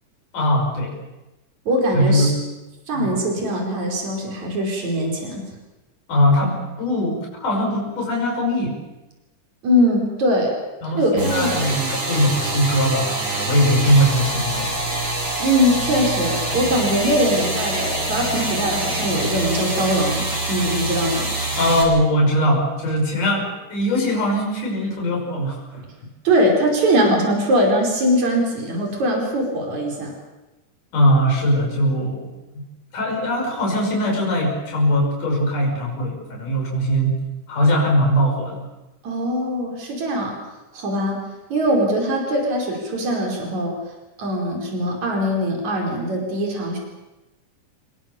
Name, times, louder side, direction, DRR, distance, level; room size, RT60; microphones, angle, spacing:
voice 1, 0.3-1.0 1.9-2.3 2.9-3.2 6.1-8.8 10.8-14.7 21.6-25.6 30.9-32.3 32.5-32.6 32.9-37.2 37.5-38.6, equal, 75° left, 1 dB, 7.3 m, -20 dB
voice 2, 1.7-2.3 2.9-5.4 9.6-10.5 10.8-11.7 15.4-21.3 26.2-30.1 39.0-40.4 40.7-41.2 41.5-43.7 44.2-46.8, equal, 60° right, 0 dB, 6.2 m, -21 dB
sound 1, 11.2-21.8, right 1 dB, 35° right, 6.4 m, -25 dB
26.0 x 22.0 x 7.1 m, 1.1 s
omnidirectional pair, 3.7 m